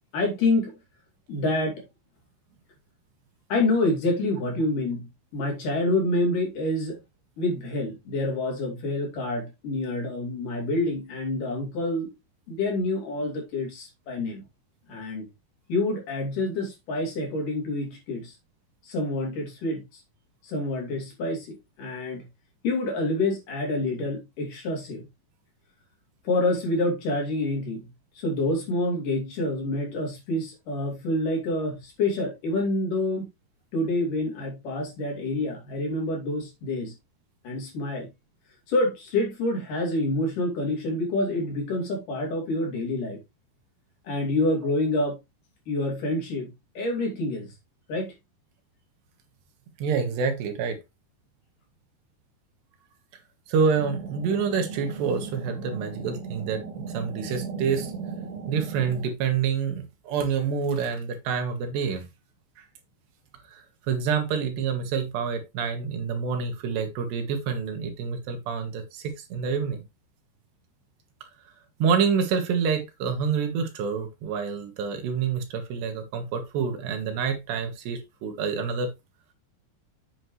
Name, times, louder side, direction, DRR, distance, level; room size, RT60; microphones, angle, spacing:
voice 1, 0.1-0.7 1.3-1.8 3.5-5.1 5.3-7.0 7.4-12.1 12.5-14.4 14.9-15.3 15.7-18.3 18.9-20.0 20.4-22.2 22.6-25.0 26.2-27.9 28.2-33.3 33.7-36.9 37.4-38.1 38.7-43.2 44.0-45.2 45.7-46.5 46.8-47.5 47.9-48.1, left 2 dB, 50° left, 4.0 m, -27 dB
voice 2, 49.8-50.8 53.5-57.9 58.5-62.1 63.5-69.8 71.8-78.9, right 6 dB, 75° right, 3.4 m, -27 dB
sound 1, 53.7-59.1, right 5 dB, 55° right, 2.8 m, -37 dB
8.0 x 7.5 x 3.1 m
omnidirectional pair, 5.0 m